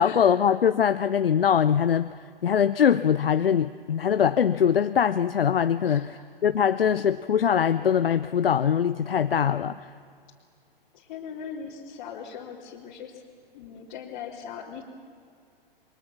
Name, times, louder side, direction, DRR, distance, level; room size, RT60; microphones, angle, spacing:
voice 1, 0.0-2.1 2.4-6.1 6.4-9.9, left 8 dB, 70° left, 12 dB, 0.7 m, -22 dB
voice 2, 5.8-6.2 10.9-13.2 13.5-14.8, left 7 dB, 45° left, -4 dB, 3.1 m, -40 dB
28.5 x 23.0 x 7.2 m, 2.4 s
figure-of-eight pair, 110°, 29 cm